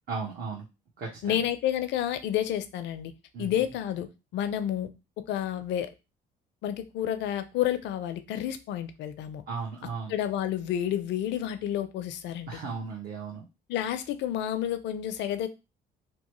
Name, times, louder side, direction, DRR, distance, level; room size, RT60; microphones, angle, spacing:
voice 1, 0.1-0.7 1.0-1.4 3.3-3.6 9.5-10.1 12.5-13.5, right 5 dB, 55° right, -3 dB, 1.0 m, -36 dB
voice 2, 1.2-3.1 3.4-4.1 4.3-4.9 5.3-5.9 6.6-9.4 10.1-12.6 13.7-15.5, left 11 dB, 70° left, 11 dB, 0.5 m, -30 dB
3.0 x 2.1 x 3.0 m, 0.27 s
supercardioid pair, 70°, 19 cm